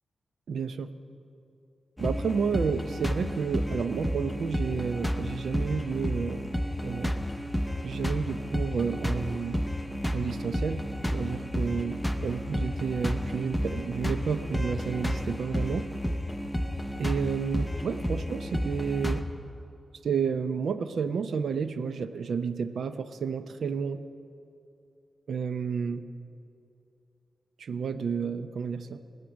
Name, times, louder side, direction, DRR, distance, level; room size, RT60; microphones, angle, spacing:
voice 1, 0.5-0.9 2.0-6.5 6.8-7.1 7.8-9.6 10.1-15.9 17.0-19.3 20.0-24.0 25.3-26.1 27.6-29.0, right 6 dB, 80° right, 10 dB, 0.6 m, -31 dB
sound 1, 2.0-19.2, equal, 5° left, 0.6 m, -31 dB
20.5 x 7.5 x 6.3 m, 2.6 s
wide cardioid pair, 155°, 0 cm